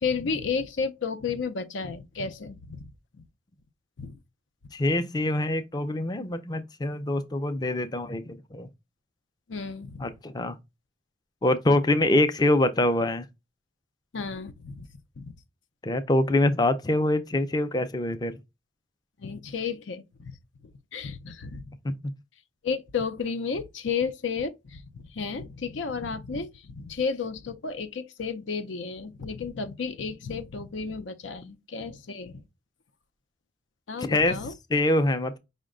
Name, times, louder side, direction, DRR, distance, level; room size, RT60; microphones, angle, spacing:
voice 1, 0.0-2.9 4.0-4.2 9.5-10.1 14.1-14.9 15.2-15.3 19.2-20.4 20.9-21.7 22.6-32.4 33.9-34.5, left 5 dB, 90° left, 0.6 m, -32 dB
voice 2, 4.7-8.7 10.0-10.5 11.4-13.2 15.8-18.4 21.8-21.9 34.0-34.4 34.7-35.4, left 1 dB, 20° left, 0.4 m, -24 dB
5.2 x 2.1 x 3.7 m
head